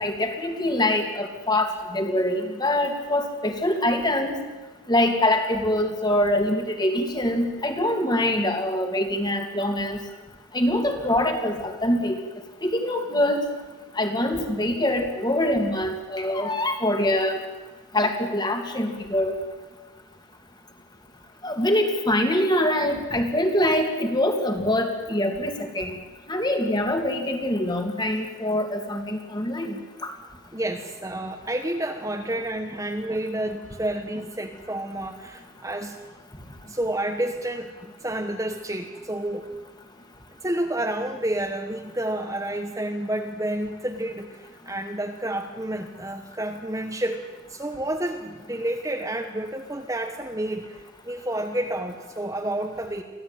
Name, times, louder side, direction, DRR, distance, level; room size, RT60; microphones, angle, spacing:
voice 1, 0.0-4.3 4.9-10.0 10.5-12.2 12.6-13.4 14.0-17.4 17.9-19.3 21.4-25.9 26.3-29.7, left 1 dB, 20° left, 4 dB, 2.5 m, -24 dB
voice 2, 30.5-36.0 36.6-39.5 40.4-47.2 47.5-53.0, right 1 dB, 15° right, 4 dB, 1.2 m, -30 dB
24.5 x 16.0 x 9.0 m, 1.3 s
head